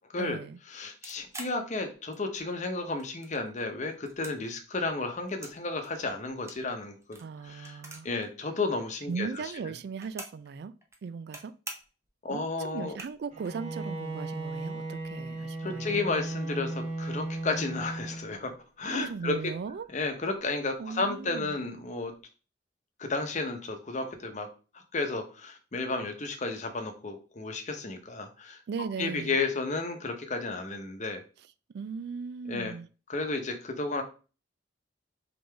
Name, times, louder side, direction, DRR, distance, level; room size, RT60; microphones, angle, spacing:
voice 1, 0.2-0.6 7.2-8.1 9.1-10.7 11.0-11.5 12.3-16.0 18.9-19.9 20.8-21.6 28.7-29.4 31.7-32.9, right 5 dB, 65° right, 15 dB, 0.3 m, -38 dB
voice 2, 0.7-9.4 12.2-13.0 15.6-18.5 18.8-19.5 19.9-22.1 23.0-24.5 24.7-28.6 29.0-31.2 32.5-32.7 33.1-34.0, left 3 dB, 45° left, 5 dB, 0.8 m, -32 dB
sound 1, 1.0-2.5 2.8-3.6 3.9-5.6 5.8-8.3 8.5-8.6 8.8-10.5 10.8-11.4 11.7-12.1 12.5-12.6 12.8-13.5, right 2 dB, 15° right, 0.7 m, -45 dB
Bowed string instrument, 13.3-18.7, right 2 dB, 40° right, 1.3 m, -36 dB
3.8 x 3.6 x 3.3 m, 0.35 s
head